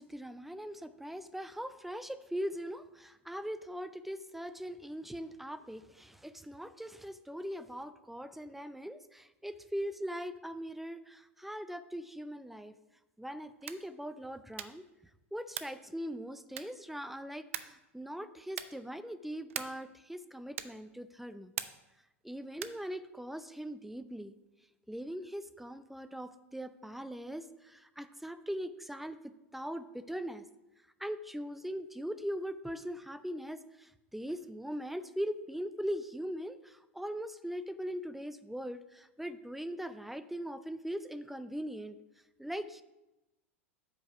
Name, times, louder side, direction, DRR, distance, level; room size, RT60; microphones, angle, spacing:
voice 1, 0.0-12.7 13.2-14.8 15.3-21.5 22.2-24.3 24.9-29.2 29.5-30.4 31.0-42.0 42.4-42.8, equal, 5° right, 13 dB, 0.5 m, -40 dB
sound 1, 13.6-13.9 14.5-14.9 15.5-15.9 16.5-16.9 17.5-17.9 18.5-18.9 19.5-19.9 20.5-20.9 21.5-22.0 22.5-22.9, right 10 dB, 65° right, 0.5 m, -42 dB
8.2 x 5.3 x 5.8 m, 0.99 s
figure-of-eight pair, 90°, 7 cm